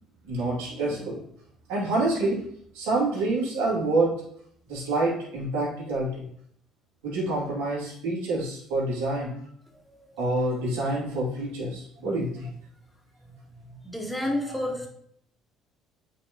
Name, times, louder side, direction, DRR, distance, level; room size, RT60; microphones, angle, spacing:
voice 1, 0.2-1.2 1.7-2.5 2.7-4.2 4.7-6.2 7.0-9.4 10.2-12.5 14.4-14.6, right 2 dB, 80° right, 2.7 m, -27 dB
voice 2, 13.8-14.9, left 1 dB, 5° left, 1.9 m, -29 dB
8.2 x 4.3 x 3.0 m
supercardioid pair, 70°, 0 cm